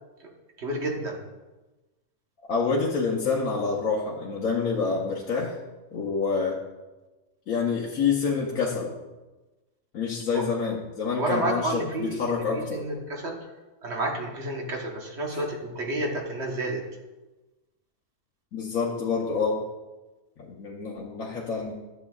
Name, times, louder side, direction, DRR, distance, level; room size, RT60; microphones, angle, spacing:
voice 1, 0.6-1.2 10.3-10.4 11.1-13.3 13.8-16.8, right 2 dB, 55° right, 0 dB, 1.4 m, -30 dB
voice 2, 2.5-5.5 5.9-6.6 7.5-8.9 9.9-12.8 18.5-19.6 20.5-21.8, left 5 dB, 80° left, -3 dB, 1.3 m, -27 dB
11.5 x 7.1 x 2.3 m, 1.1 s
omnidirectional pair, 1.4 m